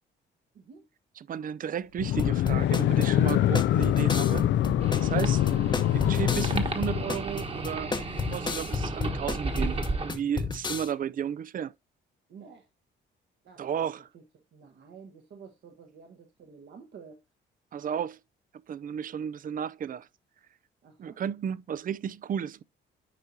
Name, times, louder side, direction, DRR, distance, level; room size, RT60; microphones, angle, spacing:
voice 1, 0.5-0.8 12.3-12.7 13.4-13.7 14.1-17.2 20.8-21.2, right 6 dB, 65° right, 1.3 m, -50 dB
voice 2, 1.2-4.4 5.0-5.4 5.9-8.0 8.3-9.8 10.0-11.7 13.6-14.1 17.7-18.2 18.7-20.1 21.0-22.6, right 8 dB, 45° right, 0.4 m, -33 dB
sound 1, 2.0-7.2, left 13 dB, 65° left, 0.4 m, -25 dB
sound 2, 2.2-10.9, left 4 dB, 20° left, 0.9 m, -32 dB
sound 3, 4.8-10.1, right 2 dB, 30° right, 1.3 m, -34 dB
10.0 x 4.6 x 2.7 m
cardioid pair, 90°, 20 cm